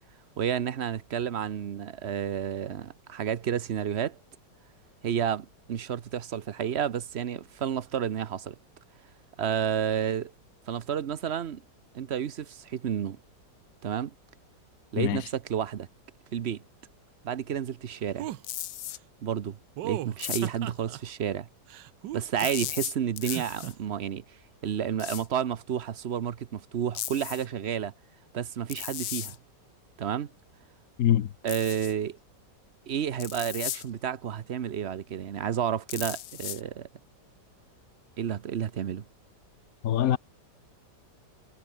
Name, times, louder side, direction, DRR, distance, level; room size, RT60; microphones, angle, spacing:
voice 1, 0.4-4.2 5.0-8.5 9.4-10.3 10.7-11.6 11.9-13.2 13.8-14.1 14.9-15.9 16.3-16.6 17.2-18.3 19.2-19.6 19.8-21.5 22.1-24.2 24.6-27.9 28.3-29.4 30.0-30.3 31.4-32.2 32.9-36.9 38.2-39.1, right 9 dB, 50° right, 0.9 m, -31 dB
sound 1, 18.2-18.4 19.8-21.0 21.7-22.7 23.2-23.7, right 14 dB, 90° right, 1.4 m, -36 dB
sound 2, 18.4-19.0 20.2-20.7 22.4-23.7 25.0-25.3 27.0-27.5 28.7-29.4 31.5-31.9 33.2-33.9 35.9-36.6, left 13 dB, 85° left, 1.5 m, -36 dB
voice 2, 31.0-31.3 39.8-40.2, left 11 dB, 60° left, 1.2 m, -23 dB
omnidirectional pair, 1.8 m